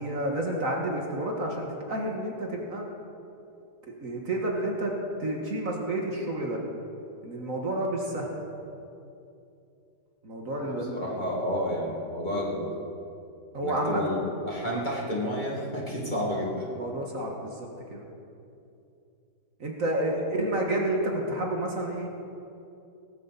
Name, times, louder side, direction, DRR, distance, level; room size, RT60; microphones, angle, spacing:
voice 1, 0.0-2.8 3.9-4.9 5.2-6.6 7.2-8.3 10.2-11.2 13.5-14.0 14.7-14.8 16.7-18.1 19.6-22.1, right 1 dB, 50° right, 0 dB, 2.0 m, -30 dB
voice 2, 10.6-12.8 13.6-16.7 20.1-20.2, equal, 25° left, -4 dB, 2.4 m, -31 dB
18.0 x 15.0 x 4.2 m, 2.7 s
omnidirectional pair, 1.9 m